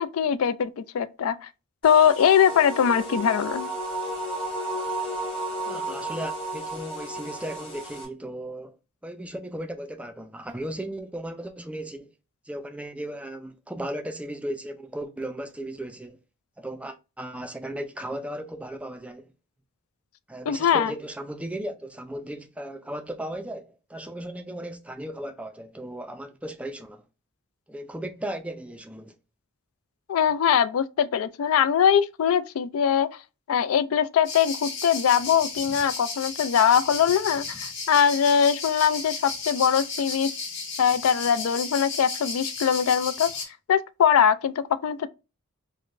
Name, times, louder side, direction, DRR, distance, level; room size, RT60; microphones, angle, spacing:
voice 1, 0.0-1.4 1.8-3.7 20.5-20.9 30.1-33.1 33.5-40.3 40.8-43.4 43.7-45.1, left 8 dB, 80° left, 0.3 m, -22 dB
sound 1, 1.8-8.0, right 1 dB, 25° left, 1.1 m, -33 dB
voice 2, 5.6-8.8 9.0-12.1 12.5-16.2 16.6-19.3 20.3-27.0 27.7-29.1, right 1 dB, 5° right, 0.3 m, -36 dB
sound 2, 34.2-43.4, left 4 dB, 60° left, 1.5 m, -34 dB
4.8 x 2.1 x 2.4 m
head